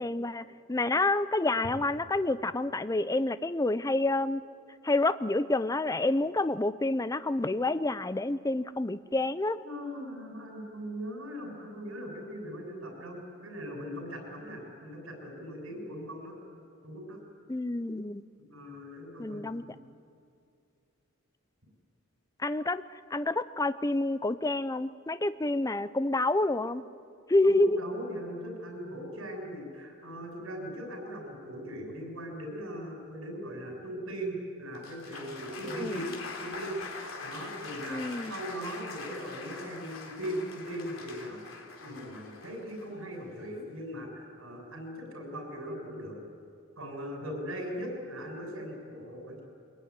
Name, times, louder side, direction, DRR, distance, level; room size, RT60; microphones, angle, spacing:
voice 1, 0.0-4.4 4.8-9.6 17.5-18.2 19.2-19.6 22.4-22.8 23.1-26.8 27.3-27.8 35.7-36.0 37.9-38.3, left 2 dB, 15° left, 14 dB, 0.6 m, -28 dB
voice 2, 9.6-16.4 16.8-17.2 18.5-19.8 27.4-36.1 36.4-36.8 37.2-41.4 41.8-46.2 46.8-49.4, equal, 80° right, 2 dB, 6.8 m, -39 dB
Applause, 34.8-43.7, left 4 dB, 70° left, 3.7 m, -43 dB
23.0 x 21.5 x 9.7 m, 2.4 s
head